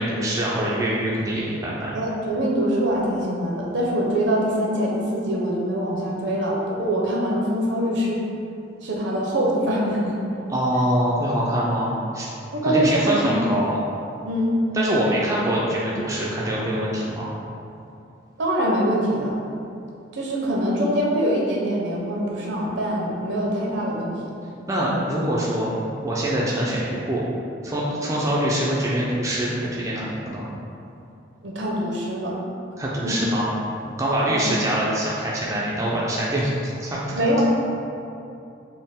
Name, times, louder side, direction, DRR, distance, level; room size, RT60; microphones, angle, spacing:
voice 1, 0.0-2.0 10.5-12.3 12.6-13.8 14.7-17.3 24.7-25.7 26.0-27.3 27.6-30.5 32.8-33.5 34.0-36.5 36.8-37.0, right 1 dB, 15° right, -6 dB, 0.3 m, -24 dB
voice 2, 1.9-8.2 8.8-10.2 12.5-13.5 14.3-14.5 18.4-19.3 20.1-24.3 31.4-32.4 33.0-33.2 34.2-34.6 37.1-37.4, equal, 65° right, -3 dB, 0.6 m, -24 dB
4.1 x 2.0 x 3.5 m, 2.6 s
head